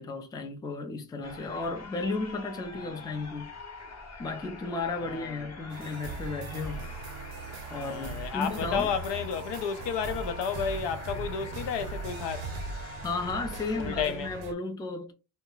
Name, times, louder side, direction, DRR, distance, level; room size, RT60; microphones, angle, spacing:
voice 1, 0.0-3.5 4.2-6.9 7.7-8.9 13.0-15.1, left 3 dB, 10° left, 0.3 m, -34 dB
sound 1, 1.2-14.1, left 3 dB, 40° left, 0.8 m, -45 dB
voice 2, 5.0-5.5 6.7-6.9 7.7-12.5 13.8-14.3, left 7 dB, 80° left, 0.6 m, -32 dB
sound 2, 5.7-14.5, right 4 dB, 75° right, 0.6 m, -39 dB
2.3 x 2.0 x 3.8 m
cardioid pair, 135°, 42 cm